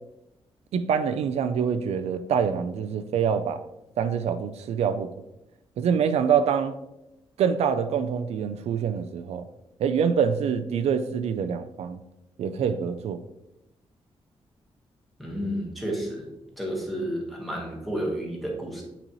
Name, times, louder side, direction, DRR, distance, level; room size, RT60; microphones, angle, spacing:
voice 1, 0.7-3.6 4.0-5.1 5.8-6.7 7.4-9.4 9.8-12.0 12.4-13.2, right 7 dB, 80° right, 0.4 m, -25 dB
voice 2, 15.2-16.3 16.6-18.8, equal, ahead, 1.3 m, -31 dB
8.2 x 4.1 x 3.0 m
wide cardioid pair, 180°, 11 cm